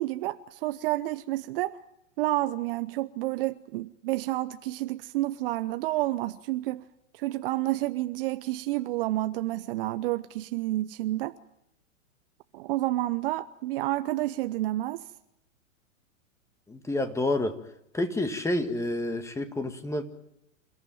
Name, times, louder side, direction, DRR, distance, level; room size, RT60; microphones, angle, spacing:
voice 1, 0.0-1.8 2.2-6.8 7.1-11.4 12.5-15.0, right 16 dB, 45° right, 0.8 m, -29 dB
voice 2, 16.7-17.6 17.9-20.0, left 1 dB, 5° left, 1.8 m, -29 dB
28.0 x 15.0 x 9.0 m
hypercardioid pair, 110°, 41 cm